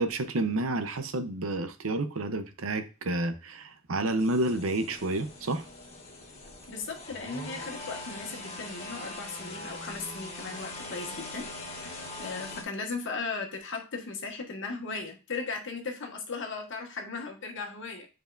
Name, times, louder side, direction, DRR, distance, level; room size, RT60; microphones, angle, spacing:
voice 1, 0.0-5.6, right 2 dB, 75° right, 0.8 m, -30 dB
sound 1, 4.2-12.6, left 2 dB, 30° left, 1.7 m, -42 dB
voice 2, 6.7-11.5 11.8-11.9 12.2-18.1, left 4 dB, 65° left, 1.5 m, -37 dB
9.2 x 4.8 x 2.6 m
head